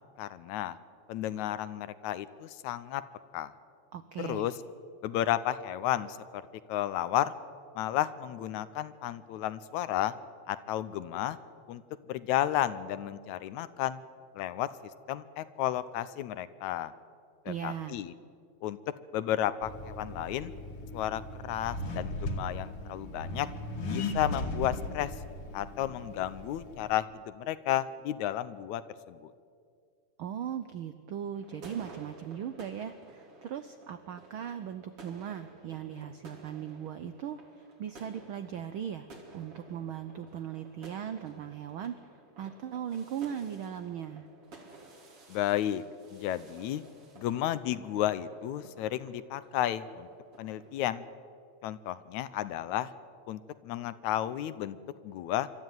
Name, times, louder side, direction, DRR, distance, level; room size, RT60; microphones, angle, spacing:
voice 1, 0.2-0.8 1.1-3.0 3.3-3.5 4.2-4.5 5.0-6.4 6.7-7.3 7.8-10.1 10.5-11.4 11.7-11.8 12.1-14.0 14.4-14.7 15.1-16.9 17.5-18.1 18.6-18.8 19.1-20.5 20.9-23.5 23.9-25.1 25.5-28.8 29.1-29.3 45.3-45.8 46.1-46.8 47.2-50.1 50.4-51.1 51.6-52.9 53.3-54.8 55.0-55.5, left 12 dB, 80° left, 15 dB, 2.1 m, -32 dB
voice 2, 3.9-4.5 17.5-18.0 30.2-39.1 39.3-41.9 42.4-44.3, right 9 dB, 90° right, 11 dB, 1.1 m, -38 dB
Accelerating revving vroom, 19.6-27.0, left 2 dB, 55° left, 2.4 m, -38 dB
sound 1, 31.3-50.8, right 2 dB, 50° right, 3.7 m, -54 dB
25.0 x 13.0 x 9.3 m, 2.2 s
omnidirectional pair, 3.3 m